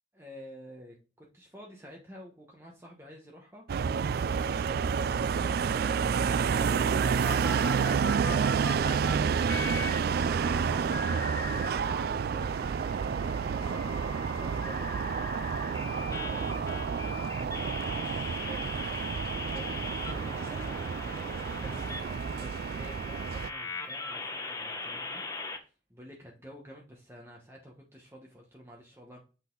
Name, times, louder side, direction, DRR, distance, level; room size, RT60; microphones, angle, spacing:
voice 1, 0.1-7.1 7.4-29.2, equal, 15° right, -1 dB, 1.0 m, -50 dB
sound 1, 3.7-23.5, right 6 dB, 50° right, 0.3 m, -29 dB
sound 2, 6.5-9.1 9.5-12.0 12.4-25.6, left 3 dB, 20° left, 0.9 m, -40 dB
8.2 x 4.0 x 3.9 m, 0.34 s
head